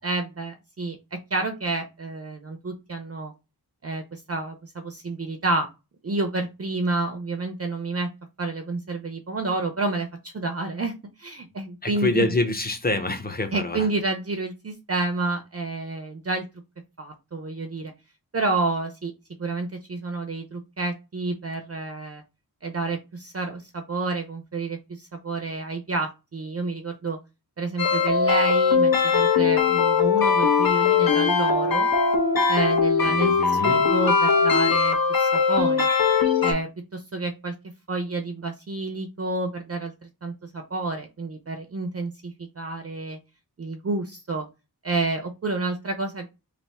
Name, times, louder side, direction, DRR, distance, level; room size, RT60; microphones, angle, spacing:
voice 1, 0.0-3.3 3.8-5.7 6.0-8.1 8.4-10.9 11.2-12.3 13.5-16.4 17.0-17.9 18.3-19.1 19.4-22.2 22.6-27.2 27.6-31.9 32.5-33.4 33.6-35.9 36.4-37.5 37.9-39.9 40.2-43.2 43.6-44.5 44.8-46.3, right 3 dB, 40° right, 0.6 m, -29 dB
voice 2, 11.8-13.9 33.1-33.8, left 2 dB, 25° left, 0.8 m, -26 dB
sound 1, 27.8-36.5, left 5 dB, 60° left, 0.9 m, -20 dB
3.3 x 2.6 x 4.1 m
wide cardioid pair, 85°, 39 cm